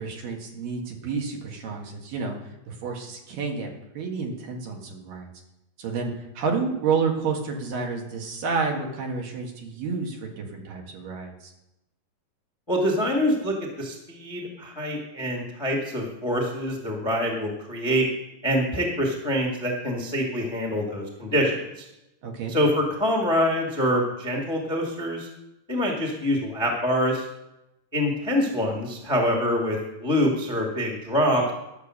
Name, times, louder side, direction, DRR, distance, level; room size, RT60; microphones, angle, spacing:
voice 1, 0.0-5.3 5.8-11.5 22.2-22.5, right 5 dB, 80° right, 1 dB, 3.4 m, -30 dB
voice 2, 12.7-18.1 18.4-21.8 22.5-25.3 25.7-27.2 27.9-31.5, equal, 15° left, 0 dB, 0.9 m, -25 dB
12.5 x 7.0 x 6.4 m, 0.91 s
omnidirectional pair, 3.9 m